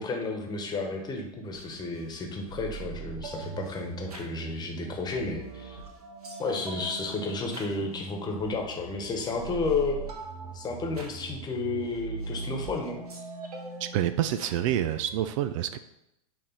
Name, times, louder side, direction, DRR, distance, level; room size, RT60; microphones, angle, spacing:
voice 1, 0.0-5.8 6.4-10.0 10.5-13.0, left 3 dB, 20° left, 2 dB, 1.3 m, -32 dB
sound 1, 1.5-15.2, right 5 dB, 85° right, 1.2 m, -41 dB
voice 2, 13.9-15.8, right 11 dB, 55° right, 12 dB, 0.4 m, -27 dB
8.6 x 3.3 x 4.1 m, 0.84 s
hypercardioid pair, 105°, 19 cm